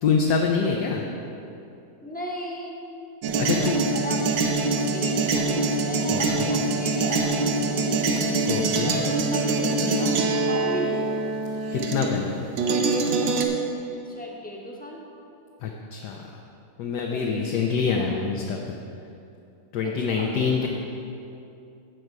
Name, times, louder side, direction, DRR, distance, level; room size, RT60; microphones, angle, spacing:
voice 1, 0.0-1.1 3.4-3.8 6.1-6.5 8.5-8.9 11.7-12.3 15.6-16.2 16.8-18.8 19.7-20.7, left 5 dB, 70° left, 1 dB, 1.3 m, -25 dB
voice 2, 2.0-2.7 3.3-4.3 4.7-8.2 8.8-11.1 14.0-15.0 17.1-18.2 19.8-20.3 20.6-20.7, equal, 5° left, -2 dB, 1.0 m, -36 dB
sound 1, 3.2-12.3 12.6-13.5, right 3 dB, 85° right, 1.5 m, -24 dB
15.5 x 5.4 x 4.7 m, 2.7 s
omnidirectional pair, 1.9 m